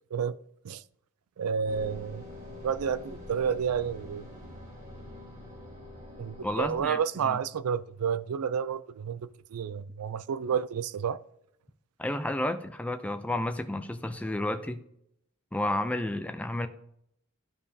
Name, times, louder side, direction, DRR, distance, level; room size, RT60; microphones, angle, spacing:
voice 1, 1.4-2.2 2.6-4.3 6.2-11.2, right 7 dB, 75° right, 0.4 m, -30 dB
sound 1, 1.7-6.8, left 1 dB, 40° right, 2.6 m, -45 dB
voice 2, 6.4-7.3 12.0-14.8 15.5-16.7, left 1 dB, 5° left, 0.4 m, -31 dB
12.0 x 5.2 x 2.7 m
head